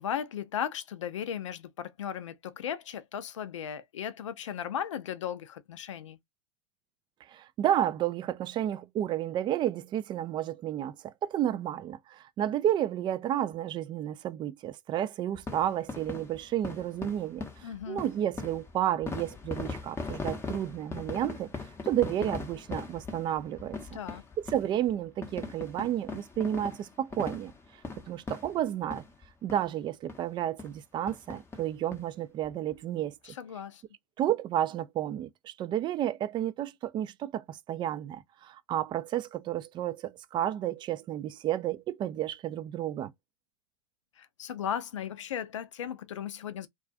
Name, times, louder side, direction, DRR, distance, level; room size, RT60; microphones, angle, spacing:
voice 1, 0.0-6.2 17.6-18.0 23.9-24.3 33.2-33.8 44.2-46.7, left 9 dB, 85° left, 0.5 m, -36 dB
voice 2, 7.3-21.5 21.8-23.8 24.4-27.5 28.1-29.0 29.4-33.1 34.2-43.1, right 11 dB, 30° right, 0.3 m, -31 dB
sound 1, 15.3-29.2 29.5-29.7 30.1-30.2 30.6-30.8 31.1-32.0 32.4-32.5 32.7-32.8, left 4 dB, 15° left, 0.7 m, -40 dB
2.4 x 2.3 x 2.4 m
hypercardioid pair, 100°, 16 cm